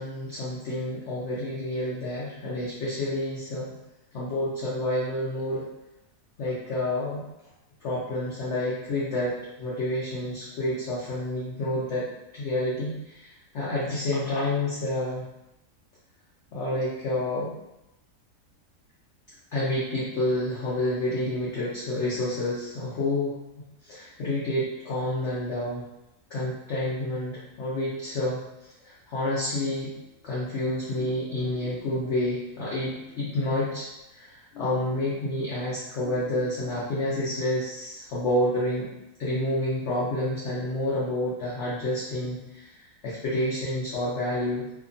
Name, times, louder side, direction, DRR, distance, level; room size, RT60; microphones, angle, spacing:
voice 1, 0.0-3.7 4.1-5.6 6.4-7.2 7.8-12.1 12.3-15.2 16.5-17.5 19.5-23.4 23.8-25.8 26.3-28.4 28.8-29.9 30.2-33.9 34.1-38.9 39.2-42.8 43.0-44.7, left 1 dB, 60° left, -8 dB, 0.7 m, -29 dB
2.8 x 2.2 x 2.5 m, 0.93 s
omnidirectional pair, 1.7 m